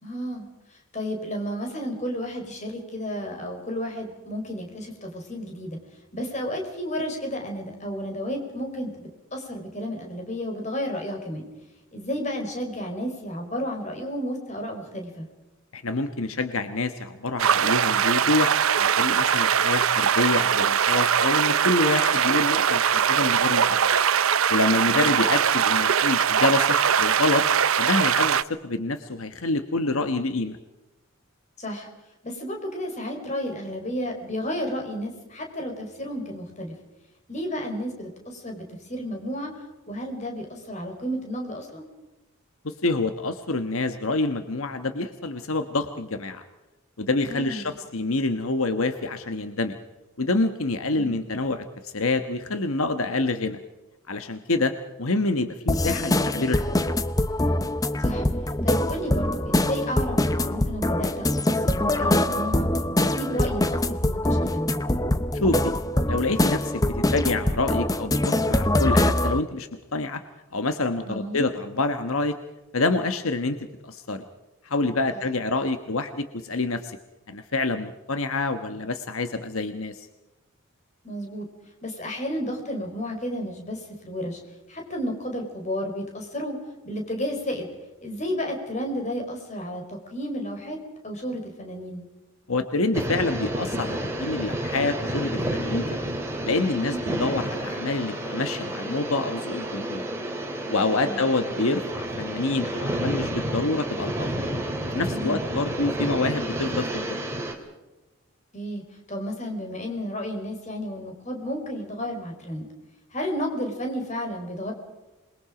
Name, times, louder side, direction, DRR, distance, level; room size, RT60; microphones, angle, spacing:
voice 1, 0.0-5.8 6.1-11.5 11.9-15.3 24.8-25.1 31.6-31.9 32.2-36.7 37.3-41.8 47.3-47.7 50.9-51.2 58.0-58.3 58.6-62.7 63.0-64.8 71.0-71.5 75.1-75.2 81.0-81.5 81.8-84.4 84.7-86.6 86.8-87.7 88.0-92.0 96.7-97.0 101.0-101.2 105.1-105.4 108.5-112.7 113.1-114.7, equal, 35° left, 2 dB, 4.8 m, -32 dB
voice 2, 15.7-18.5 18.8-24.0 24.5-27.4 27.8-30.6 42.6-46.4 47.0-49.8 50.2-53.6 54.1-56.8 65.3-65.7 66.1-70.2 70.5-72.4 72.7-74.2 74.6-77.0 77.3-80.1 92.5-96.1 96.4-100.1 100.7-104.3 104.9-107.2, left 2 dB, 80° left, 8 dB, 1.3 m, -27 dB
sound 1, 17.4-28.4, right 8 dB, 80° right, 0.7 m, -21 dB
sound 2, 55.7-69.4, left 1 dB, 15° left, 0.8 m, -24 dB
sound 3, 92.9-107.5, right 1 dB, 10° right, 3.0 m, -30 dB
27.0 x 22.0 x 5.1 m, 1.1 s
head